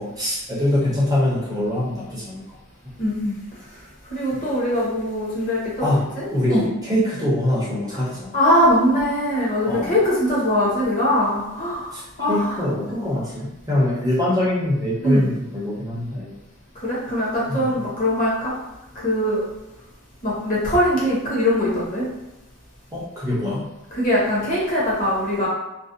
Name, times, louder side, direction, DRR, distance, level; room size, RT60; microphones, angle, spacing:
voice 1, 0.0-2.4 4.3-4.4 5.8-6.0 6.3-8.4 9.6-9.9 11.9-16.4 17.5-17.7 22.9-23.7, left 1 dB, 15° right, -6 dB, 0.5 m, -23 dB
voice 2, 3.0-3.4 4.1-6.6 7.9-8.0 8.3-11.9 12.2-12.6 12.9-13.0 15.0-15.3 16.8-18.5 19.0-19.5 20.2-22.1 23.9-25.5, equal, 35° left, -6 dB, 0.8 m, -21 dB
2.4 x 2.1 x 2.5 m, 0.96 s
head